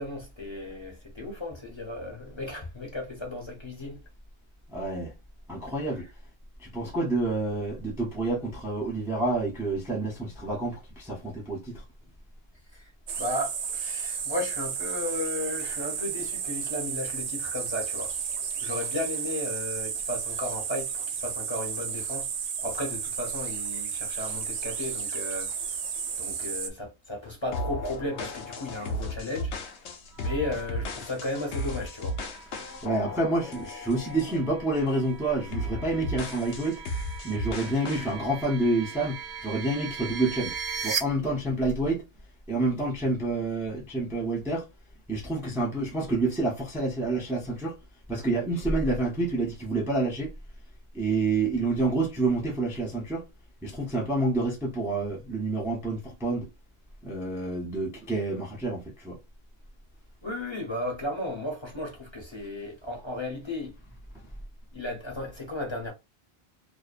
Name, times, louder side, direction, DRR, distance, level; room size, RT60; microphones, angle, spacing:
voice 1, 0.0-4.0 13.2-18.1 18.6-22.3 22.6-25.5 26.2-29.5 30.2-32.2 60.2-63.7 64.7-65.9, left 1 dB, 30° left, 0.7 m, -34 dB
voice 2, 4.7-5.1 5.5-6.1 6.6-11.8 32.8-36.8 37.2-40.5 40.8-42.1 42.5-44.7 45.1-47.8 48.1-50.3 50.9-53.3 53.6-56.5 57.0-59.2, right 2 dB, 5° right, 0.5 m, -28 dB
sound 1, 13.1-26.7, right 7 dB, 85° right, 0.9 m, -33 dB
sound 2, 27.5-34.5 34.9-35.1 35.5-38.1, left 1 dB, 80° left, 0.9 m, -35 dB
sound 3, 30.1-41.0, right 6 dB, 50° right, 0.9 m, -40 dB
2.6 x 2.1 x 2.4 m
omnidirectional pair, 1.1 m